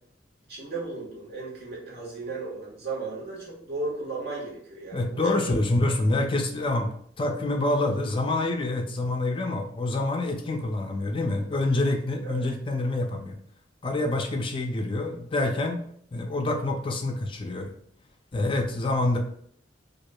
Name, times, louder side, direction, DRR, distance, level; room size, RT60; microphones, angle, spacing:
voice 1, 0.5-5.4 12.2-12.4, right 3 dB, 55° right, -5 dB, 1.3 m, -35 dB
voice 2, 4.9-6.9 7.2-13.4 13.8-15.8 16.1-17.7 18.3-19.2, left 2 dB, 30° left, 3 dB, 0.4 m, -26 dB
4.7 x 2.4 x 2.2 m, 0.64 s
head